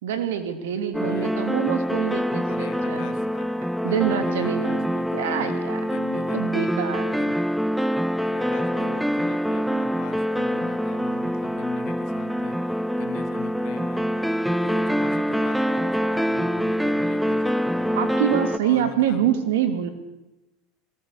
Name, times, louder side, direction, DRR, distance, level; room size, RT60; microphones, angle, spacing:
voice 1, 0.0-3.1 3.8-4.9 5.1-5.8 6.1-7.2 17.9-19.9, right 9 dB, 80° right, 9 dB, 2.9 m, -26 dB
sound 1, 0.9-18.6, equal, ahead, 0.6 m, -25 dB
voice 2, 2.5-3.5 3.8-6.4 7.1-7.4 8.2-14.0 14.5-18.1 18.6-19.3 19.8-19.9, left 9 dB, 60° left, 9 dB, 2.3 m, -41 dB
21.5 x 18.5 x 6.8 m, 0.99 s
supercardioid pair, 105°, 0 cm